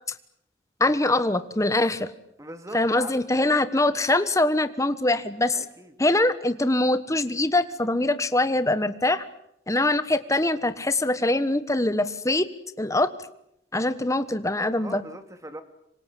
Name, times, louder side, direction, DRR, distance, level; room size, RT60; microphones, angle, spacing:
voice 1, 0.8-2.1 2.7-5.6 6.0-9.3 9.7-12.5 12.8-13.1 13.7-15.0, left 2 dB, 15° left, 12 dB, 1.3 m, -23 dB
voice 2, 2.4-3.2 5.5-5.9 14.8-15.6, right 1 dB, 15° right, 8 dB, 2.4 m, -40 dB
26.5 x 24.5 x 8.4 m, 0.77 s
head